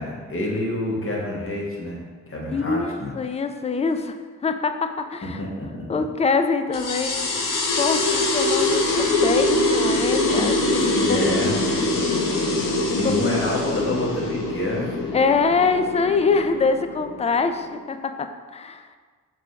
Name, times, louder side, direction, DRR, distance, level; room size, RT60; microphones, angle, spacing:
voice 1, 0.0-2.0 2.3-3.1 5.2-6.0 10.9-11.6 12.2-12.3 12.9-14.9, left 1 dB, 40° left, -2 dB, 1.3 m, -27 dB
voice 2, 2.5-4.2 4.4-5.4 5.9-7.3 7.8-11.3 12.9-13.3 13.6-13.8 15.1-18.9, left 4 dB, 20° left, 8 dB, 0.3 m, -24 dB
sound 1, 6.7-17.8, left 2 dB, 65° left, 0.8 m, -23 dB
4.7 x 3.7 x 2.8 m, 1.5 s
supercardioid pair, 40°, 35 cm